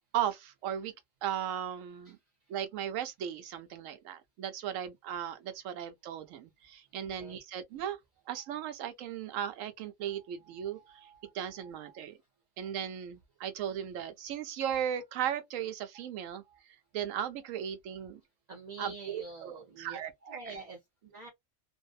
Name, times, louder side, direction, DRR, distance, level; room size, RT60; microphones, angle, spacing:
voice 1, 0.1-0.9 1.2-2.2 2.5-8.0 8.3-12.2 12.6-16.4 16.9-18.2 18.8-20.1 20.5-20.6, right 9 dB, 75° right, 1.0 m, -36 dB
voice 2, 6.9-7.4 18.5-21.3, right 3 dB, 55° right, 0.5 m, -46 dB
2.6 x 2.0 x 2.3 m
omnidirectional pair, 1.4 m